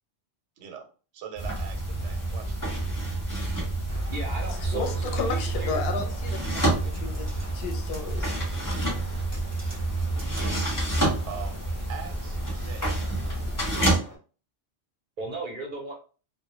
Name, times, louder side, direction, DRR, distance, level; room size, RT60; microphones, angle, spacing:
voice 1, 0.6-0.9 1.1-2.6 11.3-11.6 11.9-13.0, right 7 dB, 80° right, 5 dB, 0.9 m, -41 dB
sound 1, 1.4-14.0, right 2 dB, 20° left, 0.7 m, -28 dB
sound 2, 3.9-14.2, right 1 dB, 15° right, 0.6 m, -47 dB
voice 2, 4.1-5.8 15.2-16.0, right 3 dB, 60° right, 1 dB, 0.6 m, -36 dB
voice 3, 4.7-7.3 7.5-8.3, left 5 dB, 60° left, 4 dB, 0.7 m, -33 dB
2.2 x 2.0 x 2.8 m, 0.37 s
omnidirectional pair, 1.2 m